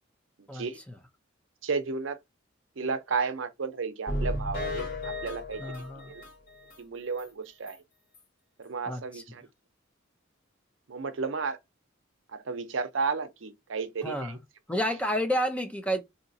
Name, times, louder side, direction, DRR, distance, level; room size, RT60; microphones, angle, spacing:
voice 1, 0.4-0.8 1.6-2.2 2.8-5.6 6.1-6.2 6.8-7.8 8.6-9.5 10.9-11.6 12.3-14.4, right 4 dB, 75° right, 0.6 m, -33 dB
sound 1, 4.1-6.8 7.2-7.3 7.7-7.8 8.1-8.2, left 1 dB, 50° left, 2.5 m, -34 dB
voice 2, 5.6-6.1 8.9-9.2 14.0-14.4 14.7-16.0, equal, 5° left, 0.6 m, -30 dB
4.0 x 2.8 x 2.7 m
head